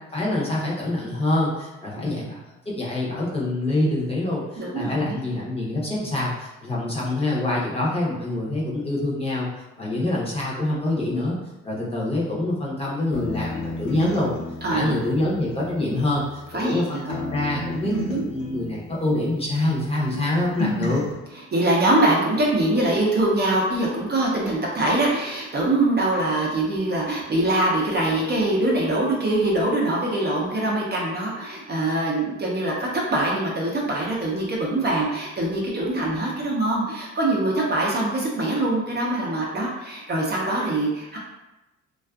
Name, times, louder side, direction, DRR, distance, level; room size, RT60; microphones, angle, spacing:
voice 1, 0.1-2.4 2.7-9.5 9.8-11.3 11.6-14.3 14.7-21.0, left 1 dB, 20° left, -6 dB, 0.7 m, -25 dB
voice 2, 4.6-5.2 10.0-10.1 14.6-14.9 16.5-17.2 17.8-18.2 20.7-20.9 21.5-41.2, right 1 dB, 35° right, -4 dB, 0.6 m, -23 dB
sound 1, 13.1-16.8 17.1-19.9 20.1-21.1, left 2 dB, 75° left, 0.7 m, -33 dB
2.4 x 2.3 x 2.3 m, 1.0 s
cardioid pair, 90°, 30 cm